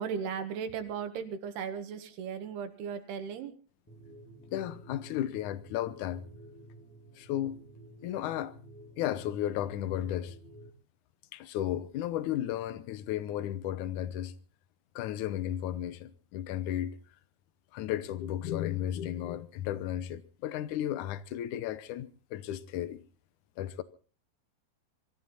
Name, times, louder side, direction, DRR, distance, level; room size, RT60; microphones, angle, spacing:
voice 1, 0.0-3.5, right 7 dB, 85° right, 3.7 m, -36 dB
sound 1, 3.9-10.7, right 1 dB, 10° left, 0.8 m, -51 dB
voice 2, 4.5-6.2 7.2-7.6 8.0-8.5 9.0-10.4 11.3-14.3 15.0-17.0 17.7-23.0 23.6-23.8, left 12 dB, 70° left, 2.0 m, -34 dB
24.0 x 14.5 x 4.1 m
omnidirectional pair, 4.4 m